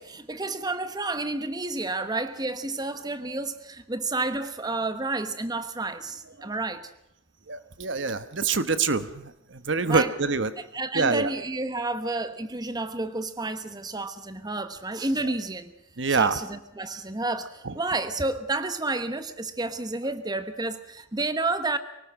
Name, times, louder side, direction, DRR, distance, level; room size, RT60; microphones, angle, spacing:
voice 1, 0.0-6.9 9.9-10.1 10.6-15.7 16.1-21.8, right 2 dB, 20° right, 11 dB, 1.2 m, -30 dB
voice 2, 7.5-10.5 10.9-11.3 15.2-15.3 16.0-16.4 17.6-17.8, right 4 dB, 65° right, 12 dB, 1.2 m, -26 dB
24.0 x 18.5 x 6.2 m, 0.86 s
head